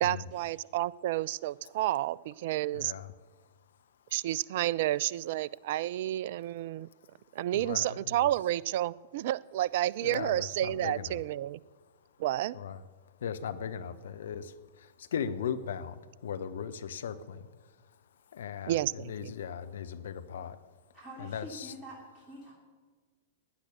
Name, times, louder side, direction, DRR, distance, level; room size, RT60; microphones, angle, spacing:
voice 1, 0.0-2.9 4.1-6.9 7.3-11.6 12.2-12.6 18.7-19.3, right 14 dB, 50° right, 23 dB, 0.3 m, -30 dB
voice 2, 2.7-3.1 7.5-8.3 10.0-11.2 12.5-12.8 13.2-14.4 15.1-15.9 16.2-17.4 18.3-20.6 21.2-21.7, left 7 dB, 60° left, 10 dB, 0.8 m, -37 dB
voice 3, 20.9-22.5, equal, 10° right, -5 dB, 3.1 m, -46 dB
16.5 x 10.0 x 6.8 m, 1.4 s
figure-of-eight pair, 100°, 0 cm